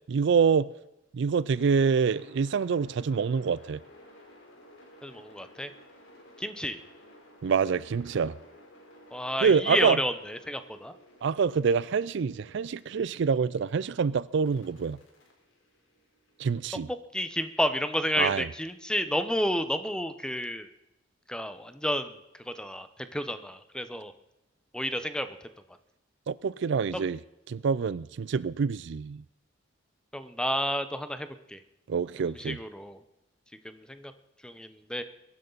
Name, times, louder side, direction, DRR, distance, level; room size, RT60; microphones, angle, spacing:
voice 1, 0.1-0.7 1.1-3.8 7.4-8.4 9.4-10.0 11.2-15.0 16.4-16.9 18.2-18.5 26.3-27.2 27.5-29.2 31.9-32.6, right 6 dB, 60° right, 0.4 m, -26 dB
sound 1, 1.5-13.9 14.5-16.6, left 1 dB, 80° left, 4.4 m, -55 dB
voice 2, 5.0-5.7 6.4-6.8 9.1-10.9 16.9-20.7 21.3-22.2 22.5-24.1 24.7-25.3 26.9-27.0 30.1-31.6 32.2-33.0 33.6-34.1 34.4-35.0, equal, 5° left, 0.8 m, -31 dB
22.0 x 11.0 x 4.0 m
head